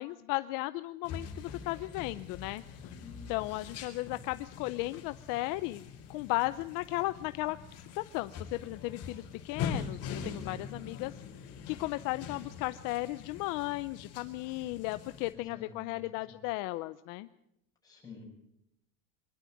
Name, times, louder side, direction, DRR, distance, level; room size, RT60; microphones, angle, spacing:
voice 1, 0.0-2.9 3.3-5.8 6.1-17.3, left 19 dB, 55° left, 13 dB, 0.7 m, -35 dB
sound 1, 1.0-15.3, left 6 dB, 35° left, 4.2 m, -43 dB
voice 2, 3.0-4.2 10.3-11.0 15.3-16.4 17.8-18.2, left 3 dB, 10° left, -3 dB, 7.5 m, -51 dB
23.5 x 12.0 x 9.3 m, 0.82 s
cardioid pair, 170°, 40 cm